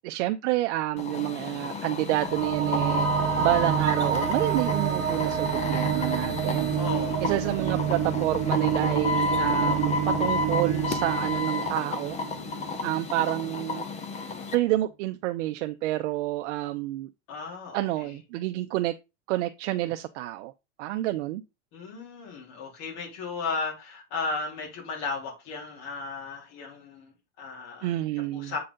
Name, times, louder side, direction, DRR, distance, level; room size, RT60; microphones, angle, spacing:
voice 1, 0.0-3.1 3.4-6.7 7.2-9.9 10.2-12.2 12.8-13.9 14.5-17.1 17.7-18.9 19.3-20.5 20.8-21.4 27.8-28.5, right 16 dB, 80° right, 0.6 m, -28 dB
sound 1, 1.0-14.6, left 4 dB, 20° left, 0.7 m, -31 dB
sound 2, 2.1-13.1, right 8 dB, 35° right, 1.2 m, -28 dB
voice 2, 6.8-7.3 17.3-18.2 21.7-28.6, left 4 dB, 50° left, 3.3 m, -35 dB
7.7 x 4.0 x 3.8 m
supercardioid pair, 155°, 35 cm